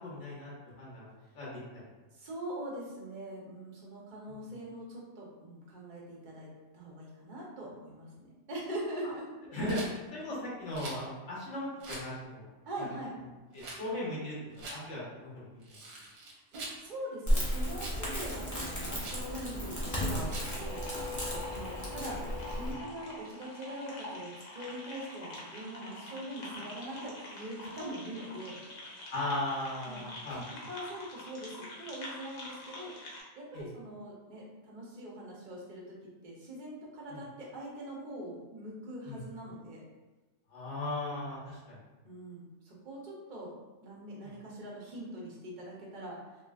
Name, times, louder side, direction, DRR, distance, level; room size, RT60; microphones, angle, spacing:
voice 1, 0.0-1.5 4.3-4.4 9.5-12.5 13.5-15.8 20.1-20.4 26.4-26.6 29.1-30.4 33.5-33.6 37.1-37.2 39.0-39.2 40.5-41.8 44.2-44.3, left 1 dB, 70° left, -6 dB, 1.3 m, -38 dB
voice 2, 2.1-6.5 6.7-9.3 12.6-13.1 16.2-22.2 22.5-28.6 29.9-30.0 30.3-32.9 33.4-36.0 36.2-39.8 42.0-43.5 43.8-46.2, right 1 dB, 45° right, -4 dB, 0.8 m, -43 dB
Rattle, 9.6-9.9 10.7-11.0 11.8-12.1 13.5-13.8 14.5-14.8 15.6-16.8 17.7-18.0 19.0-19.3 20.3-20.6, right 2 dB, 70° right, 1.0 m, -44 dB
Crackle, 17.3-22.7, equal, 20° left, 0.5 m, -34 dB
sound 1, 19.9-33.2, left 1 dB, 85° left, 1.1 m, -46 dB
3.0 x 2.8 x 2.3 m, 1.2 s
omnidirectional pair, 1.3 m